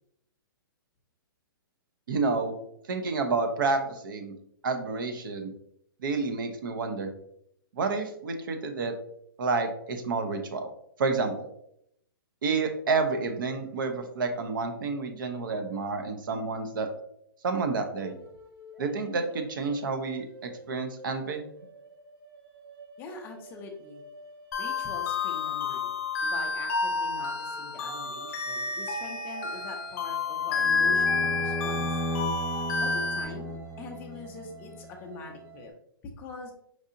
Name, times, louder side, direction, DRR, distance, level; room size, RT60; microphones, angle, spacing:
voice 1, 2.1-2.6 2.9-4.3 4.6-5.5 6.0-7.1 7.7-8.9 9.4-10.7 11.0-11.5 12.4-16.9 17.4-18.1 18.8-21.4, right 4 dB, 60° right, 7 dB, 0.7 m, -29 dB
sound 1, 18.0-26.4 27.5-35.7, right 2 dB, 85° right, 1.0 m, -50 dB
voice 2, 23.0-24.0 24.6-31.9 32.8-35.7 36.2-36.5, left 3 dB, 15° left, 2 dB, 0.4 m, -43 dB
sound 2, 24.5-33.2, left 4 dB, 40° left, 0.8 m, -29 dB
sound 3, 30.6-34.9, equal, 30° right, 1.3 m, -35 dB
4.7 x 2.7 x 2.5 m, 0.74 s
hypercardioid pair, 165°, 12 cm